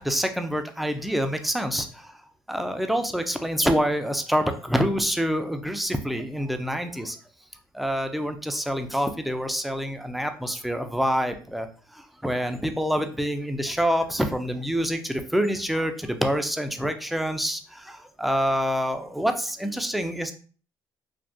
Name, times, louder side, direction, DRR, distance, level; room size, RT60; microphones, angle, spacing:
voice 1, 0.0-2.2 2.5-7.2 7.7-11.7 11.9-20.3, equal, ahead, 7 dB, 0.4 m, -26 dB
3.5 x 2.3 x 2.6 m, 0.40 s
cardioid pair, 95°, 9 cm